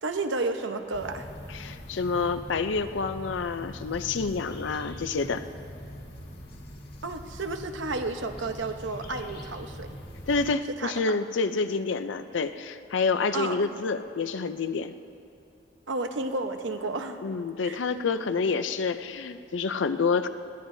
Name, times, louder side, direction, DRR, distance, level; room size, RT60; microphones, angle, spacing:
voice 1, 0.0-1.3 7.0-9.9 10.8-10.9 13.3-13.6 15.9-17.2 17.6-17.8, right 3 dB, 75° right, 6 dB, 0.9 m, -31 dB
sound 1, 0.9-10.5, equal, 60° left, 1.8 m, -42 dB
voice 2, 1.5-5.4 10.3-14.9 17.2-20.3, left 4 dB, 75° left, 10 dB, 0.5 m, -28 dB
22.0 x 17.0 x 2.7 m, 2.5 s
head